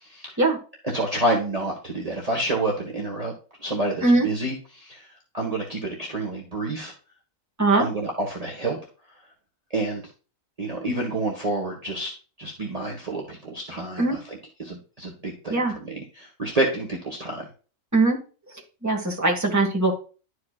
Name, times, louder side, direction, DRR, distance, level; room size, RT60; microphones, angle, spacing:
voice 1, 0.0-0.4 0.8-3.3 3.6-6.9 7.8-8.8 9.7-10.0 10.6-12.1 12.4-17.4, right 2 dB, 30° right, -2 dB, 1.5 m, -29 dB
voice 2, 18.8-20.0, right 2 dB, 10° right, 0 dB, 1.7 m, -20 dB
12.0 x 4.9 x 2.4 m, 0.35 s
omnidirectional pair, 1.4 m